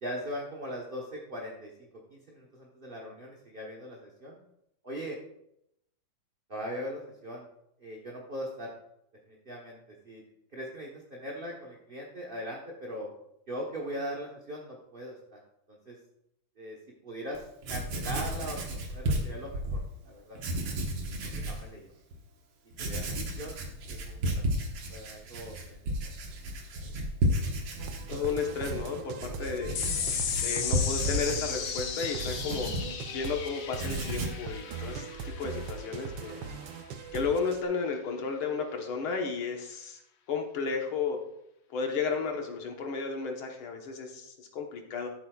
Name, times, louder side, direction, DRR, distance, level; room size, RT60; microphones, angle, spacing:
voice 1, 0.0-4.4 4.8-5.2 6.5-7.5 7.8-8.7 9.3-9.8 10.0-10.2 10.5-13.1 13.5-15.4 15.7-16.0 16.6-16.8 17.0-17.4 17.7-18.6 18.9-20.4 21.3-21.9 22.8-23.6 23.9-24.4 24.9-26.0 26.7-26.9 36.3-36.5, equal, 35° right, -2 dB, 1.0 m, -40 dB
Writing, 17.3-17.4 17.6-19.8 20.3-21.6 22.1-22.2 22.7-33.4 33.7-34.5, equal, 90° right, 2.2 m, -33 dB
sound 1, 27.8-37.6, right 5 dB, 70° right, 1.3 m, -41 dB
voice 2, 28.1-29.8 30.4-32.7 33.1-36.4 37.1-40.0 40.3-41.2 41.7-45.1, left 5 dB, 85° left, 2 dB, 2.1 m, -33 dB
sound 2, 29.8-36.5, left 7 dB, 65° left, 1.6 m, -35 dB
12.5 x 8.1 x 2.4 m, 0.80 s
omnidirectional pair, 2.3 m